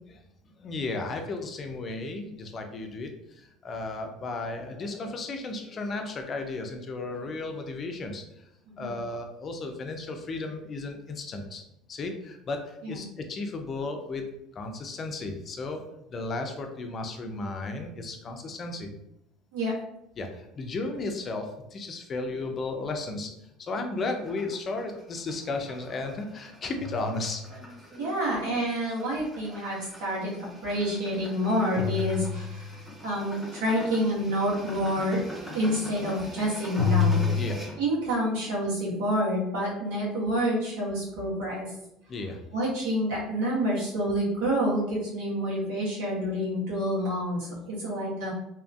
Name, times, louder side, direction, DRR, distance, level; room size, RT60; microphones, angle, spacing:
voice 1, 0.1-8.4 8.8-11.6 11.9-14.3 14.5-15.8 16.1-18.9 20.2-27.4 37.4-37.6 42.1-42.4, left 3 dB, 40° left, 4 dB, 0.4 m, -34 dB
sound 1, 24.2-37.8, equal, 5° right, 0.7 m, -44 dB
sound 2, 25.4-25.5 26.4-30.0 31.7-32.9 36.8-37.4, left 6 dB, 40° right, 1.0 m, -29 dB
voice 2, 28.0-32.8 33.0-35.2 35.5-37.2 37.8-41.7 42.5-48.3, equal, 85° right, -6 dB, 1.3 m, -28 dB
2.8 x 2.5 x 2.3 m, 0.80 s
supercardioid pair, 100°, 0 cm